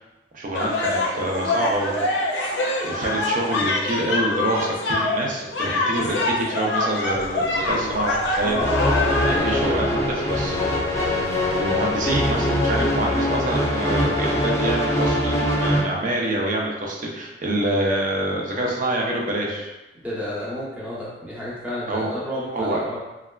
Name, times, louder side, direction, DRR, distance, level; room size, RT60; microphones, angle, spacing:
voice 1, 0.3-2.1 2.4-8.6 9.3-10.6 11.0-11.2 11.5-19.7 21.9-22.1 22.5-22.8, right 1 dB, 50° right, -1 dB, 0.5 m, -26 dB
sound 1, 0.5-9.4, left 2 dB, 80° left, 0.5 m, -24 dB
sound 2, 7.1-12.4, left 1 dB, 65° right, 1.2 m, -41 dB
voice 2, 8.4-8.7 9.0-9.9 20.0-23.0, left 1 dB, 10° right, -8 dB, 0.8 m, -31 dB
sound 3, 8.6-15.8, left 1 dB, 15° left, 0.4 m, -22 dB
3.3 x 2.3 x 2.2 m, 1.1 s
head